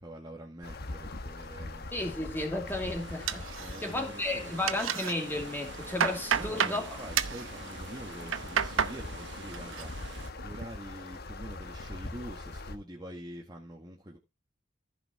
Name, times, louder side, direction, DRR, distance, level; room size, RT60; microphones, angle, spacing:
voice 1, 0.0-1.9 3.6-4.8 6.2-9.9 10.4-14.2, right 1 dB, 20° right, 1.8 m, -45 dB
River Usk, 0.6-12.8, left 2 dB, 50° left, 1.2 m, -42 dB
voice 2, 1.9-3.4 3.8-7.0, left 1 dB, 10° left, 2.7 m, -33 dB
sound 1, 2.7-10.3, right 4 dB, 60° right, 1.2 m, -47 dB
sound 2, 3.3-4.1 4.4-5.1 5.6-6.8 7.1-7.4 8.1-9.0 9.3-9.8 10.2-10.6, right 7 dB, 85° right, 0.8 m, -31 dB
14.5 x 5.9 x 4.5 m
head